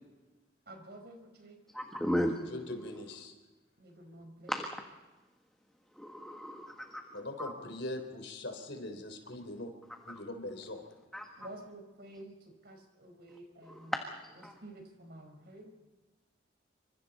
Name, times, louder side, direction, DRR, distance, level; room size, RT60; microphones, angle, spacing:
voice 1, 0.6-1.6 3.8-4.6 11.4-13.9 14.3-15.7, right 1 dB, 55° right, 4 dB, 4.9 m, -50 dB
voice 2, 1.7-2.4 4.5-4.7 6.0-7.0 7.4-7.5 10.1-10.2 11.1-11.3 13.7-14.0 14.4-14.5, equal, ahead, 2 dB, 1.4 m, -34 dB
voice 3, 2.5-3.3 7.1-9.7 10.1-10.8, left 1 dB, 65° left, 6 dB, 3.8 m, -41 dB
27.5 x 25.5 x 4.2 m, 1.2 s
head